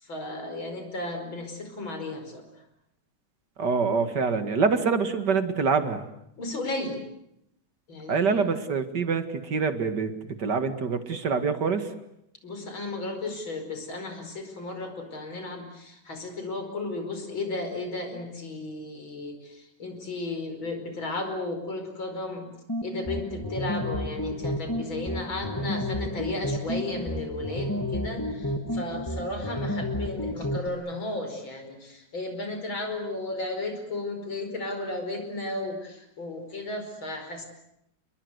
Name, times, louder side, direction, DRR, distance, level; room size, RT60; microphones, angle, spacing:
voice 1, 0.0-2.5 6.4-7.0 7.9-8.2 12.4-22.5 22.8-37.5, left 2 dB, 75° left, 6 dB, 5.8 m, -34 dB
voice 2, 3.6-6.0 8.1-11.9, right 5 dB, 55° right, 9 dB, 2.5 m, -25 dB
sound 1, 22.7-30.7, left 1 dB, 10° left, 1.8 m, -31 dB
29.5 x 22.0 x 8.1 m, 0.81 s
omnidirectional pair, 2.2 m